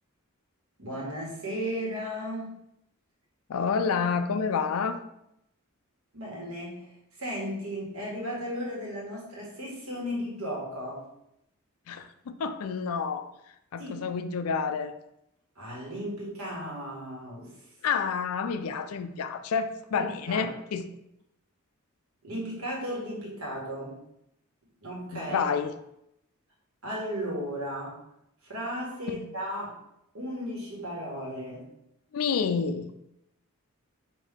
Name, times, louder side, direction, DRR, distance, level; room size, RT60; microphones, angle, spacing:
voice 1, 0.8-2.6 6.1-6.9 7.2-11.0 13.8-14.0 15.5-17.6 20.0-20.5 22.2-24.0 24.8-25.5 26.8-28.0 28.5-29.8 30.1-31.6, equal, 75° right, -4 dB, 1.6 m, -35 dB
voice 2, 3.5-5.0 11.9-13.3 13.7-14.9 17.8-20.8 25.1-25.7 29.1-29.3 32.1-32.9, left 6 dB, 80° left, 10 dB, 0.4 m, -29 dB
5.3 x 2.7 x 3.6 m, 0.81 s
head